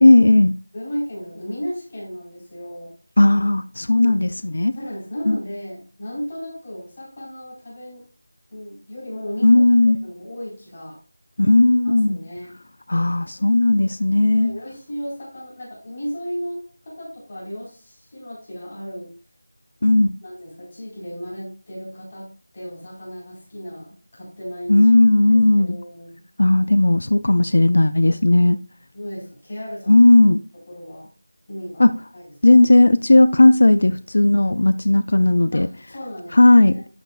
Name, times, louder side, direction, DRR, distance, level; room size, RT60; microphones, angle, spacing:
voice 1, 0.0-0.5 3.2-4.7 5.3-5.4 9.4-10.0 11.4-12.2 12.9-14.5 19.8-20.1 24.7-25.8 26.4-28.6 29.9-30.4 31.8-31.9 32.4-35.7 36.3-36.7, left 2 dB, 55° left, 0.5 m, -15 dB
voice 2, 0.7-2.9 3.9-4.3 4.7-8.0 8.5-11.0 11.8-12.5 14.4-19.1 20.2-22.3 22.5-24.9 25.3-26.2 28.9-30.1 30.7-31.1 31.5-32.6 35.5-36.8, equal, 30° left, 4.5 m, -35 dB
12.0 x 6.3 x 2.4 m
figure-of-eight pair, 175°, 0 cm